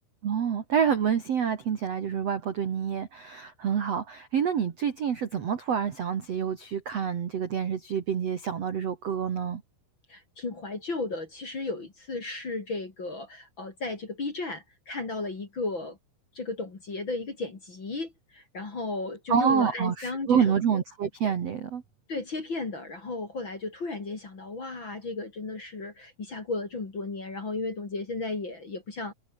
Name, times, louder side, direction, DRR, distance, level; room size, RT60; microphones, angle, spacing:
voice 1, 0.2-9.6 19.3-21.8, right 7 dB, 70° right, 1.5 m, -27 dB
voice 2, 10.1-16.0 16.3-20.8 22.1-29.1, left 3 dB, 30° left, 2.8 m, -34 dB
omnidirectional pair, 5.9 m